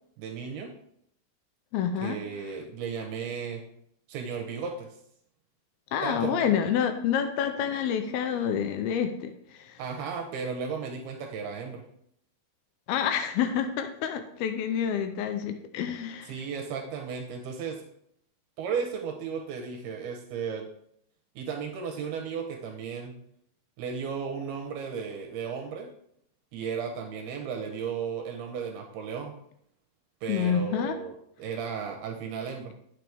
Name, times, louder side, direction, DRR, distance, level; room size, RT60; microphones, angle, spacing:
voice 1, 0.2-0.7 2.0-3.6 4.1-4.9 6.0-6.6 9.8-11.8 16.3-17.8 18.6-20.7 21.4-23.1 23.8-25.9 26.5-29.4 30.2-31.1 31.4-32.7, right 6 dB, 80° right, 2 dB, 2.7 m, -34 dB
voice 2, 1.7-2.2 5.9-9.8 12.9-16.3 30.3-31.0, left 8 dB, 80° left, 8 dB, 2.3 m, -28 dB
9.4 x 6.9 x 3.4 m, 0.71 s
omnidirectional pair, 4.7 m